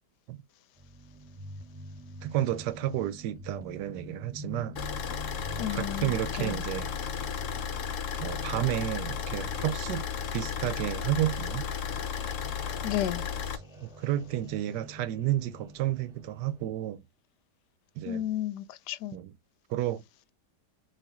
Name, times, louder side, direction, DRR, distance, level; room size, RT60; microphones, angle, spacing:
sound 1, 0.8-16.7, equal, ahead, 1.5 m, -47 dB
voice 1, 2.2-4.8 5.7-6.9 8.2-10.0 10.3-11.7 13.8-17.0 18.0-18.2 19.1-19.3 19.7-20.0, right 13 dB, 90° right, 1.2 m, -31 dB
Car / Idling, 4.8-13.6, left 7 dB, 55° left, 1.0 m, -34 dB
voice 2, 5.6-6.6 12.8-13.3 18.0-19.2, left 12 dB, 80° left, 1.2 m, -33 dB
5.7 x 2.9 x 3.0 m
omnidirectional pair, 1.8 m